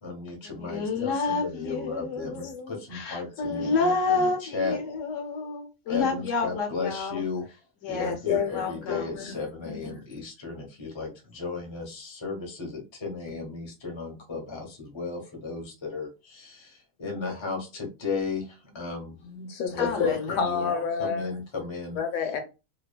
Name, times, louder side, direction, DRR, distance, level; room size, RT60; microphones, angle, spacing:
voice 1, 0.0-4.8 5.9-7.6 7.9-11.1 11.3-19.3 19.7-20.7 21.0-22.0, left 4 dB, 25° left, 0.7 m, -35 dB
voice 2, 0.6-7.2 7.8-8.2 8.5-9.1 19.8-20.8, left 4 dB, 65° left, 1.1 m, -29 dB
voice 3, 8.0-9.4 19.2-21.3 22.0-22.4, left 6 dB, 90° left, 1.1 m, -29 dB
2.8 x 2.2 x 2.2 m
omnidirectional pair, 1.4 m